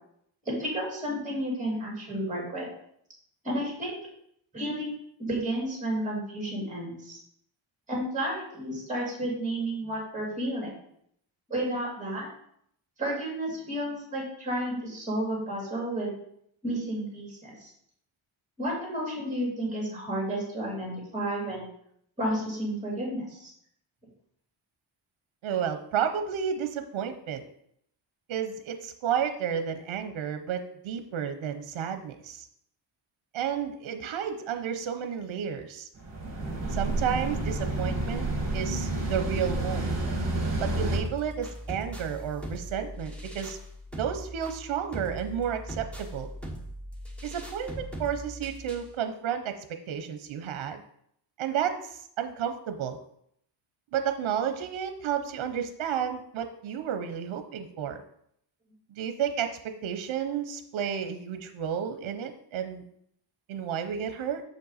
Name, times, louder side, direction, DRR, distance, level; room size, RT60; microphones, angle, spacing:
voice 1, 0.5-2.7 3.4-4.0 4.5-7.2 7.9-10.7 11.5-12.3 13.0-16.1 16.6-17.7 18.6-21.6 22.2-23.5, right 1 dB, 15° right, -2 dB, 2.6 m, -31 dB
voice 2, 25.4-27.4 28.3-32.5 33.3-35.9 36.7-38.3 38.5-39.9 40.6-43.6 43.9-46.3 47.2-49.6 49.9-50.8 51.4-53.0 53.9-58.0 58.9-62.8 63.5-64.4, right 8 dB, 75° right, 8 dB, 0.7 m, -32 dB
sound 1, 36.0-41.0, right 2 dB, 30° right, 2.1 m, -29 dB
sound 2, 40.9-48.9, equal, 5° left, 1.1 m, -40 dB
6.7 x 5.3 x 4.0 m, 0.71 s
wide cardioid pair, 160°, 48 cm